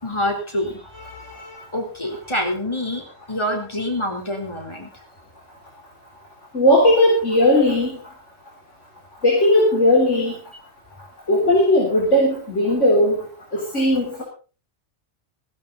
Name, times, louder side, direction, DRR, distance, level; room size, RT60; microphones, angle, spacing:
voice 1, 0.0-4.9, left 1 dB, 25° left, 2 dB, 3.8 m, -27 dB
voice 2, 6.5-8.0 9.2-10.4 11.3-13.1 13.5-14.2, left 1 dB, 75° left, -2 dB, 4.5 m, -17 dB
16.0 x 15.5 x 4.1 m, 0.36 s
omnidirectional pair, 1.2 m